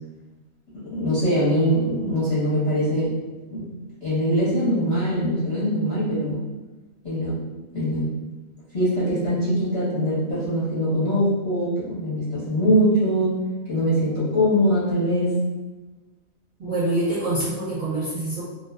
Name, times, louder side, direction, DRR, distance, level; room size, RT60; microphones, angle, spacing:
voice 1, 0.8-3.1 3.5-3.7 4.0-6.4 7.0-7.4 7.7-8.1 8.7-13.4 13.7-15.4, equal, 30° left, -11 dB, 0.9 m, -22 dB
voice 2, 16.6-18.4, right 2 dB, 35° right, -11 dB, 0.7 m, -25 dB
2.3 x 2.3 x 2.3 m, 1.2 s
omnidirectional pair, 1.4 m